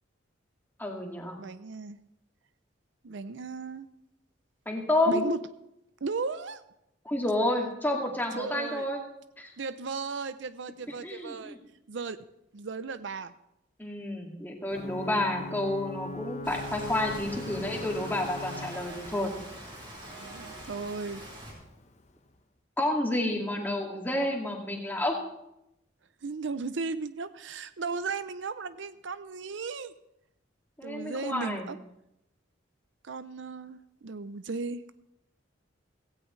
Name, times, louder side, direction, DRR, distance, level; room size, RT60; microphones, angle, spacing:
voice 1, 0.8-1.4 4.7-5.2 7.1-9.0 9.4-9.5 11.0-11.6 13.8-19.3 22.8-25.2 30.8-31.7, left 1 dB, 10° left, 0 dB, 2.2 m, -30 dB
voice 2, 1.4-2.0 3.0-3.9 5.1-5.4 6.0-6.6 8.3-8.9 9.6-11.6 11.9-12.2 12.5-13.3 20.2-21.2 26.2-29.9 30.8-31.8 33.0-34.8, right 4 dB, 70° right, 13 dB, 0.6 m, -36 dB
Ocean / Boat Water vehicle / Alarm, 14.7-22.2, left 2 dB, 35° left, 1.0 m, -42 dB
Rain, 16.4-21.5, right 1 dB, 25° right, 4.6 m, -44 dB
17.0 x 16.0 x 3.2 m, 0.84 s
head